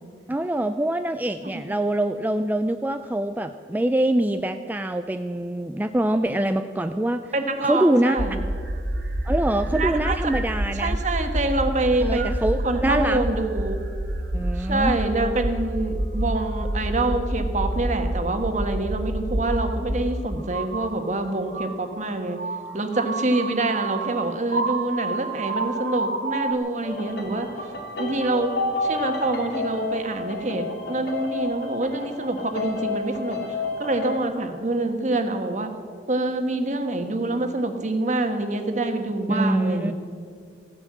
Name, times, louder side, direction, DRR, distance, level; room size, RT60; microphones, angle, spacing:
voice 1, 0.3-7.3 7.7-8.2 9.3-11.0 12.0-13.2 14.3-14.9 39.3-39.9, right 1 dB, 10° right, 8 dB, 0.4 m, -24 dB
voice 2, 7.3-8.4 9.7-10.2 10.7-12.3 12.6-13.8 14.6-22.4 22.7-27.5 28.0-28.5 28.8-35.7 36.1-39.9, right 2 dB, 45° right, 6 dB, 1.3 m, -26 dB
sound 1, 8.2-20.0 20.5-26.5, right 1 dB, 80° right, 1.4 m, -28 dB
sound 2, 26.8-34.2, left 3 dB, 70° left, 3.0 m, -31 dB
15.5 x 9.8 x 7.5 m, 2.2 s
head